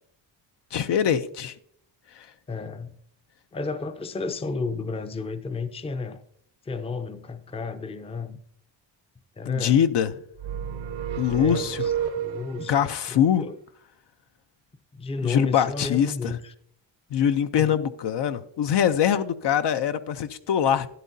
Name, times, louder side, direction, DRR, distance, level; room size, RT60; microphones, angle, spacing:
voice 1, 0.7-1.6 2.1-2.3 9.5-10.1 11.2-11.9 12.7-13.4 15.2-16.4 17.1-20.9, left 9 dB, 65° left, 0.6 m, -23 dB
voice 2, 2.5-3.0 3.5-6.2 6.6-8.4 9.4-9.8 11.3-12.7 13.1-13.6 14.9-16.5 17.6-17.8, left 4 dB, 15° left, 0.5 m, -33 dB
sound 1, 10.4-12.8, right 8 dB, 75° right, 0.8 m, -30 dB
12.0 x 10.0 x 2.7 m
cardioid pair, 95°, 46 cm